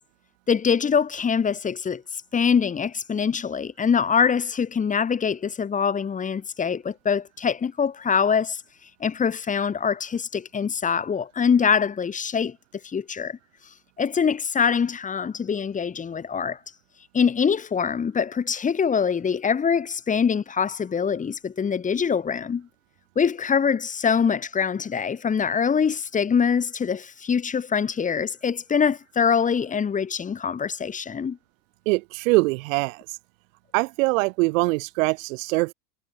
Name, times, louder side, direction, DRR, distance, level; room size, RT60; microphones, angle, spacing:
voice 1, 0.5-8.6 9.0-12.6 12.8-13.4 14.0-16.6 17.1-22.7 23.2-31.4, left 6 dB, 20° left, 3.3 m, -24 dB
voice 2, 31.9-33.0 33.7-35.7, right 25 dB, 70° right, 7.7 m, -23 dB
supercardioid pair, 145°, 40 cm